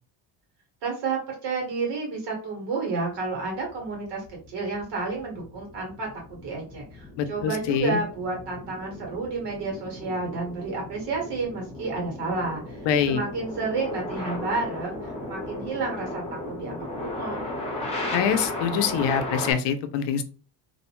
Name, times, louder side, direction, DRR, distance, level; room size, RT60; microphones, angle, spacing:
voice 1, 0.8-17.4, right 3 dB, 70° right, 0 dB, 1.4 m, -31 dB
sound 1, 3.5-19.5, left 1 dB, 15° left, 0.7 m, -36 dB
voice 2, 7.2-8.0 12.8-13.2 18.1-20.2, left 8 dB, 75° left, 8 dB, 0.5 m, -24 dB
2.6 x 2.1 x 2.9 m, 0.38 s
cardioid pair, 155°, 43 cm